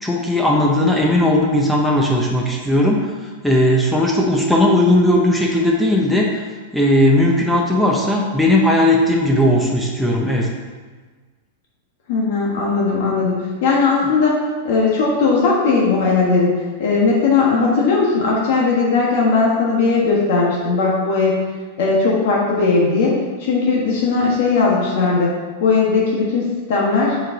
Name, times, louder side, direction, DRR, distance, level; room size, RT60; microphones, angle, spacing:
voice 1, 0.0-3.1 3.4-6.4 6.7-10.5, left 1 dB, ahead, -2 dB, 0.6 m, -16 dB
voice 2, 12.1-21.5 21.8-25.3 25.6-27.2, left 4 dB, 55° left, -3 dB, 1.4 m, -18 dB
7.4 x 4.7 x 3.9 m, 1.4 s
supercardioid pair, 170°, 0 cm